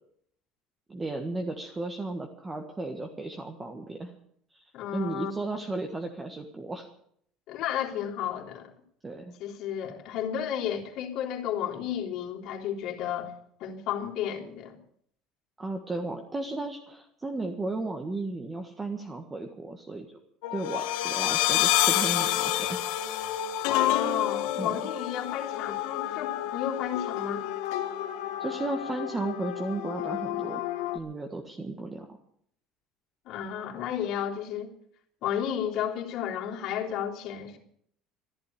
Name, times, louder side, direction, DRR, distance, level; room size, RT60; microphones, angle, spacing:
voice 1, 0.9-4.1 4.5-4.6 4.9-6.8 9.0-9.3 15.6-20.2 20.5-22.8 24.6-24.8 28.4-30.6 30.9-32.2, right 2 dB, 15° right, 4 dB, 1.5 m, -34 dB
voice 2, 4.7-5.3 7.5-8.7 9.4-13.3 13.6-14.7 23.6-27.4 33.2-34.7 35.2-37.6, left 10 dB, 60° left, -1 dB, 3.4 m, -32 dB
sound 1, 20.4-31.0, left 13 dB, 85° left, 1.6 m, -29 dB
14.5 x 11.5 x 8.5 m, 0.66 s
cardioid pair, 135°, 0 cm